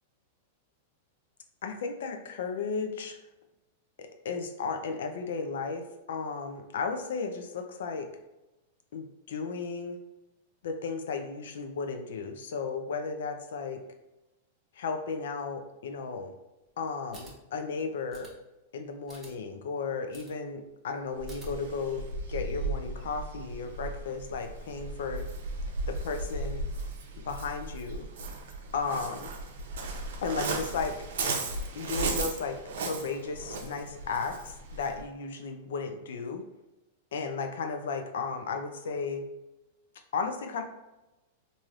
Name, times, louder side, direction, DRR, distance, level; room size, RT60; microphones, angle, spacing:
voice 1, 1.6-3.2 4.0-5.8 6.1-8.1 8.9-10.0 10.6-13.8 14.8-16.3 16.8-18.3 18.7-25.3 25.9-26.6 27.2-28.1 28.7-29.3 30.2-30.9 31.8-36.4 37.1-39.2 40.1-40.6, left 4 dB, 80° left, 6 dB, 0.4 m, -34 dB
sound 1, 17.1-17.3 18.1-18.3 19.1-19.3 20.1-20.3 21.2-21.5, right 2 dB, 15° right, 1.0 m, -49 dB
Waves surf, 21.2-35.0, right 3 dB, 80° right, 0.6 m, -36 dB
3.2 x 2.6 x 2.3 m, 1.0 s
supercardioid pair, 140°, 0 cm